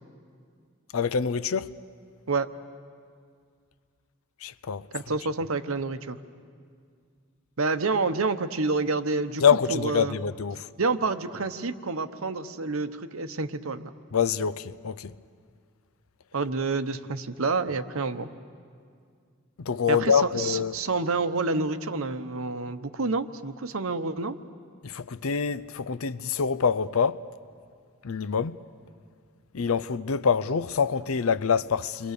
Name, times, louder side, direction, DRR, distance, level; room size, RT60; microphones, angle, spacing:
voice 1, 0.9-1.7 4.4-4.9 9.4-10.7 14.1-15.1 19.6-20.7 24.8-27.2 28.0-28.6 29.5-32.1, left 6 dB, 75° left, 0.6 m, -25 dB
voice 2, 4.9-6.2 7.6-9.4 9.7-10.1 10.8-13.8 16.3-18.3 19.9-24.4, right 3 dB, 75° right, 0.9 m, -28 dB
29.5 x 23.5 x 6.7 m
head